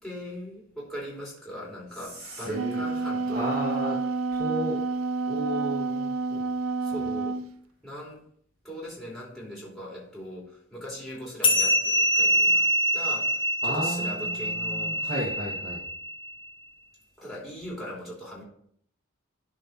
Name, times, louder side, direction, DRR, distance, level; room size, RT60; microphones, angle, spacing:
voice 1, 0.0-3.5 6.8-7.4 7.8-8.2 8.6-15.0 17.2-18.4, equal, ahead, -5 dB, 2.9 m, -39 dB
voice 2, 1.9-2.8 3.3-4.0 4.3-4.8 5.2-6.4 6.9-7.0 13.6-15.8, equal, 50° right, -4 dB, 2.0 m, -33 dB
Wind instrument woodwind instrument, 2.3-7.5, right 4 dB, 90° right, 0.5 m, -29 dB
sound 1, 11.4-16.3, equal, 25° left, 1.1 m, -25 dB
11.5 x 4.2 x 4.6 m, 0.64 s
head